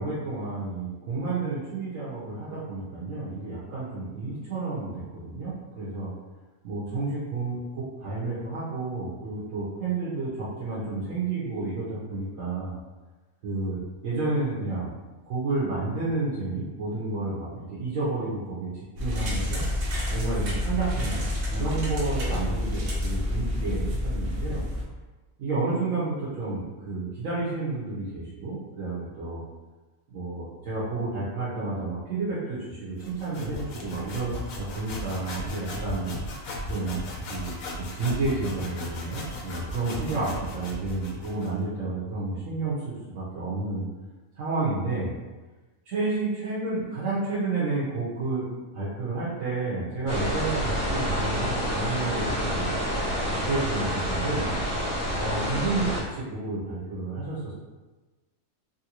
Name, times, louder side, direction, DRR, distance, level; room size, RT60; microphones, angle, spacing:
voice 1, 0.0-6.1 6.6-12.8 13.4-14.9 15.3-19.6 20.1-24.6 25.4-29.4 30.1-36.1 36.7-43.8 44.4-45.1 45.9-48.4 48.7-52.7 53.4-54.5 55.2-57.5, right 3 dB, 75° right, -10 dB, 1.2 m, -31 dB
sound 1, 19.0-24.8, left 1 dB, 55° right, 0.8 m, -29 dB
sound 2, 33.0-41.6, left 1 dB, 85° left, 1.1 m, -36 dB
sound 3, 50.1-56.0, equal, 55° left, 1.4 m, -28 dB
3.3 x 2.5 x 2.9 m, 1.2 s
omnidirectional pair, 1.4 m